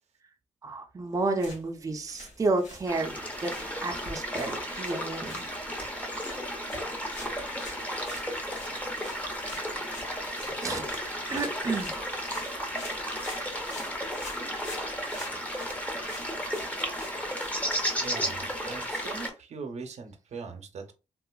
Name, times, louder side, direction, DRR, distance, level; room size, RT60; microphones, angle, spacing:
voice 1, 0.6-3.5 3.8-5.4 10.6-10.9 11.3-11.9, right 3 dB, 25° right, 2 dB, 0.5 m, -31 dB
sound 1, 1.3-18.1, left 2 dB, 80° left, 1.6 m, -48 dB
sound 2, 2.9-19.3, equal, 10° left, 0.7 m, -33 dB
voice 2, 17.9-20.9, right 4 dB, 65° right, 6 dB, 0.6 m, -40 dB
3.6 x 2.4 x 2.3 m, 0.29 s
wide cardioid pair, 130°, 12 cm